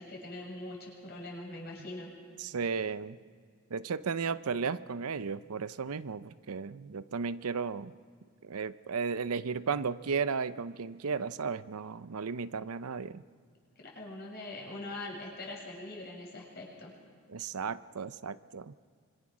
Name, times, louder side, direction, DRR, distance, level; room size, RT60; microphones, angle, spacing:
voice 1, 0.0-2.1 13.8-16.9, left 2 dB, 45° left, -3 dB, 7.1 m, -42 dB
voice 2, 2.4-3.2 3.7-7.9 8.4-13.2 17.3-18.7, right 5 dB, 85° right, 14 dB, 0.6 m, -34 dB
25.5 x 25.0 x 6.2 m, 2.1 s
head